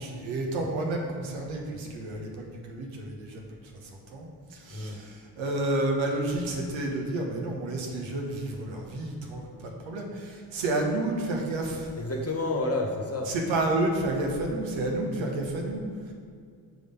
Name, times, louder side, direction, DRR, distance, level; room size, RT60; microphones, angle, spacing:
voice 1, 0.0-11.9 13.2-16.1, right 2 dB, 75° right, 1 dB, 1.1 m, -30 dB
voice 2, 12.0-13.3, left 2 dB, 30° left, 1 dB, 1.3 m, -29 dB
6.1 x 3.4 x 5.3 m, 2.3 s
supercardioid pair, 50°, 47 cm